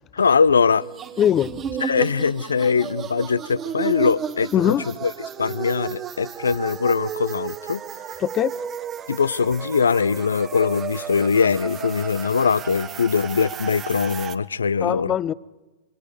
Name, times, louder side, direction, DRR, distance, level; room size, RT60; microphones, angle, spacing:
voice 1, 0.1-0.8 1.8-5.1 5.4-7.8 9.1-15.1, left 5 dB, 80° left, 0.6 m, -21 dB
sound 1, 0.8-14.4, right 8 dB, 25° right, 1.3 m, -33 dB
voice 2, 1.2-1.6 4.5-4.8 8.3-8.5 14.8-15.3, left 10 dB, 25° left, 0.7 m, -21 dB
29.5 x 23.5 x 5.0 m
figure-of-eight pair, 105°, 0 cm